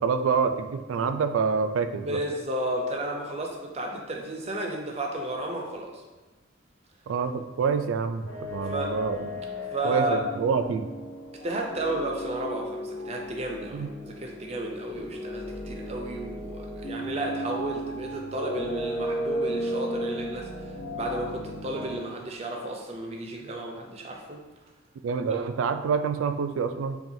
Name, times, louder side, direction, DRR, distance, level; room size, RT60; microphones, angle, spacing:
voice 1, 0.0-2.2 7.1-9.4 9.8-10.9 13.7-13.9 25.0-27.0, right 5 dB, 90° right, 9 dB, 0.3 m, -27 dB
voice 2, 2.0-6.0 8.6-8.9 9.7-10.2 11.4-24.4, right 1 dB, 30° right, 1 dB, 0.5 m, -33 dB
sound 1, 8.3-22.0, equal, 65° left, 1.2 m, -35 dB
5.6 x 2.3 x 2.6 m, 1.2 s
head